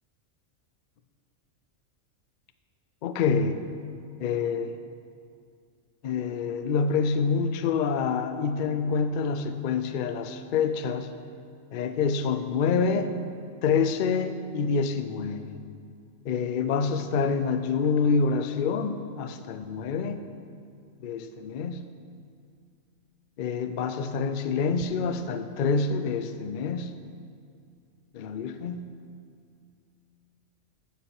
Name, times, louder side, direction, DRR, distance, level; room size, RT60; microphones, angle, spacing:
voice 1, 3.0-3.6 4.2-4.7 6.0-11.1 11.7-13.1 13.6-15.6 16.2-20.2 21.0-21.8 23.4-26.9 28.1-28.8, left 5 dB, 75° left, 10 dB, 0.4 m, -27 dB
8.9 x 7.0 x 4.6 m, 2.4 s
omnidirectional pair, 1.4 m